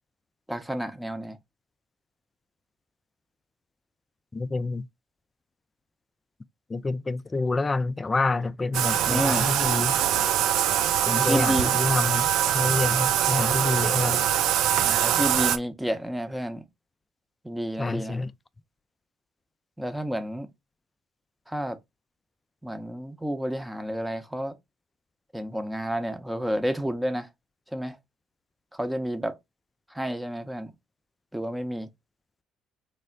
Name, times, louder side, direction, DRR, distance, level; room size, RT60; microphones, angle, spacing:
voice 1, 0.5-1.4 9.0-9.4 11.2-11.8 14.8-16.6 17.4-18.2 19.8-20.5 21.5-21.8 22.6-24.6 25.3-27.3 27.7-28.0 28.7-29.4 29.9-30.7 31.3-31.9, equal, 5° right, 0.7 m, -30 dB
voice 2, 4.3-4.9 6.7-9.9 11.1-14.3 17.8-18.3, left 3 dB, 25° left, 0.3 m, -27 dB
Bathtub (filling or washing), 8.7-15.6, right 11 dB, 70° right, 0.3 m, -23 dB
3.3 x 2.1 x 3.8 m
hypercardioid pair, 55°, 0 cm